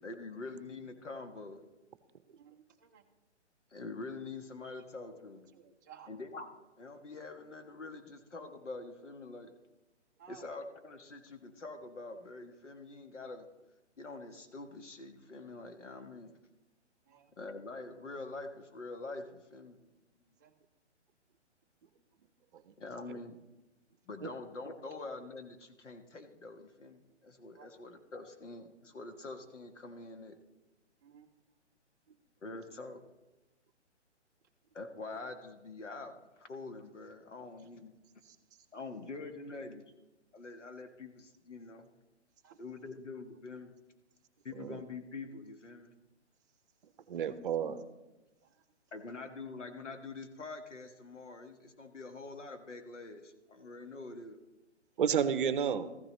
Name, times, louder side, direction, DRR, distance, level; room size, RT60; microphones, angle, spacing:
voice 1, 0.0-1.6 3.7-5.5 6.1-6.5 6.8-9.5 10.3-13.5 14.0-16.3 17.4-19.8 22.8-23.4 24.1-30.4 32.4-33.0 34.7-37.9 38.7-39.8 40.3-41.9 42.6-43.7 44.4-45.9 48.9-54.4, left 3 dB, 85° left, 5 dB, 1.6 m, -45 dB
voice 2, 2.4-3.0 5.5-6.1 10.2-10.4 17.1-17.3 20.4-20.5 27.5-27.7 31.0-31.3 38.2-38.7 42.4-42.6 48.4-48.5 49.1-49.2, right 9 dB, 15° right, 2 dB, 0.5 m, -57 dB
voice 3, 47.1-47.8 55.0-55.9, right 7 dB, 45° right, 13 dB, 0.8 m, -31 dB
14.0 x 13.5 x 3.2 m, 1.0 s
hypercardioid pair, 145°, 35 cm